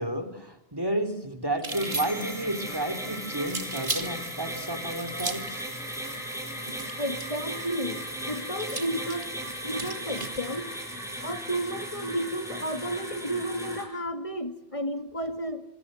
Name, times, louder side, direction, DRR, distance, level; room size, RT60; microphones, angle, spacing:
voice 1, 0.0-5.7, right 1 dB, 20° right, 3.6 m, -31 dB
sound 1, 1.5-2.4 3.4-4.1 5.1-5.6 6.7-7.4 8.6-10.4, right 3 dB, 55° right, 2.4 m, -35 dB
sound 2, 1.7-13.8, equal, 5° right, 7.8 m, -36 dB
voice 2, 7.0-10.7 11.2-15.6, equal, 30° left, 2.1 m, -32 dB
28.0 x 27.5 x 7.7 m
omnidirectional pair, 1.0 m